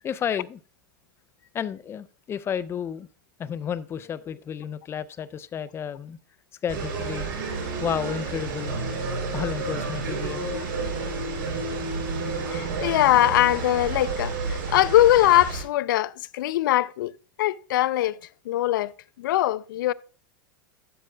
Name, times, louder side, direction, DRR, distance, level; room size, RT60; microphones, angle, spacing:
voice 1, 0.0-0.6 1.5-3.1 3.4-6.2 6.6-7.3 7.8-8.8 9.3-10.5, left 8 dB, 25° left, 0.5 m, -31 dB
sound 1, 6.7-15.6, right 3 dB, 80° right, 3.6 m, -30 dB
voice 2, 12.5-17.1 17.4-18.2 18.5-18.9 19.2-19.9, left 14 dB, 80° left, 0.4 m, -21 dB
12.5 x 7.5 x 2.3 m
supercardioid pair, 130°, 11 cm